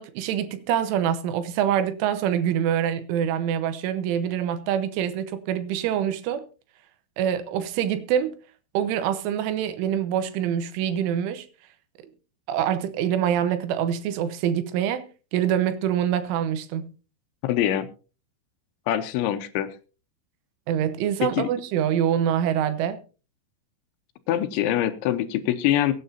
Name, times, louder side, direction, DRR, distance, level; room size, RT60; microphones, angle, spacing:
voice 1, 0.0-6.5 7.2-8.4 8.8-11.5 12.5-16.9 20.7-23.0, right 9 dB, 90° right, 3.4 m, -25 dB
voice 2, 17.4-17.9 18.9-19.7 21.3-21.5 24.3-25.9, left 12 dB, 80° left, 3.1 m, -24 dB
23.0 x 9.4 x 2.7 m
omnidirectional pair, 5.6 m